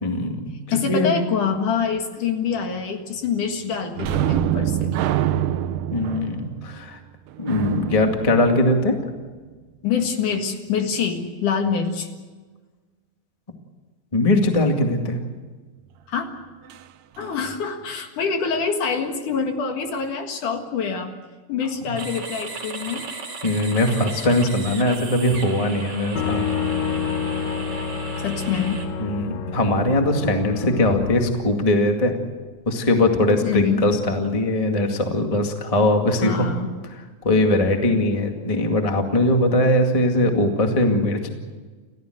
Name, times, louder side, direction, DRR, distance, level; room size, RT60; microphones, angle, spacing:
voice 1, 0.0-1.2 5.9-7.0 7.4-9.0 14.1-15.2 21.8-22.0 23.4-26.4 29.0-32.2 32.6-36.5 37.2-41.3, left 1 dB, 15° left, 4 dB, 1.2 m, -21 dB
voice 2, 0.7-4.9 9.8-12.1 16.1-16.3 17.2-21.1 21.5-23.1 28.2-28.8 33.4-33.8 36.1-36.8, left 6 dB, 60° left, 5 dB, 3.1 m, -25 dB
sound 1, 4.0-9.4 16.7-16.8 17.2-17.4, right 11 dB, 70° right, 2.2 m, -26 dB
sound 2, 22.0-28.8, right 4 dB, 40° right, 4.3 m, -36 dB
sound 3, 26.2-32.0, left 6 dB, 85° left, 3.4 m, -28 dB
29.5 x 15.0 x 8.0 m, 1.4 s
omnidirectional pair, 4.3 m